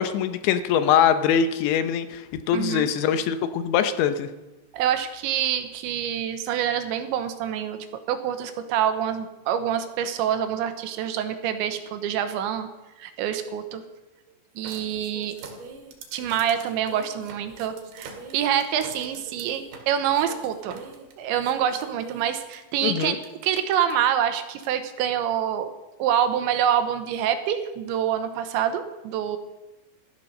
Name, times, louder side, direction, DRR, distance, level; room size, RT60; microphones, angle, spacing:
voice 1, 0.0-4.3 22.8-23.2, left 8 dB, 80° left, 10 dB, 3.0 m, -23 dB
voice 2, 2.5-2.9 4.7-7.8 8.1-12.7 13.0-13.8 14.6-15.4 16.1-20.8 21.2-25.7 26.0-29.4, right 9 dB, 80° right, 9 dB, 3.3 m, -26 dB
sound 1, 14.6-22.6 23.2-23.3 23.6-23.9 24.6-24.7, right 5 dB, 60° right, 3.4 m, -43 dB
15.0 x 13.0 x 6.5 m, 1.1 s
omnidirectional pair, 5.4 m